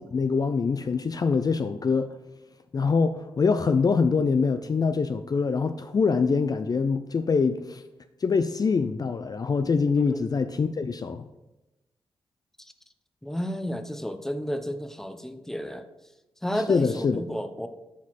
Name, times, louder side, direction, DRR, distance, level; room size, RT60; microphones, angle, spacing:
voice 1, 0.1-2.1 2.7-7.8 8.2-11.2 16.7-17.2, left 5 dB, 40° left, 9 dB, 0.4 m, -24 dB
voice 2, 13.2-15.8 16.4-17.7, equal, 5° left, 8 dB, 0.7 m, -32 dB
7.2 x 4.1 x 4.1 m, 0.99 s
cardioid pair, 50°, 10 cm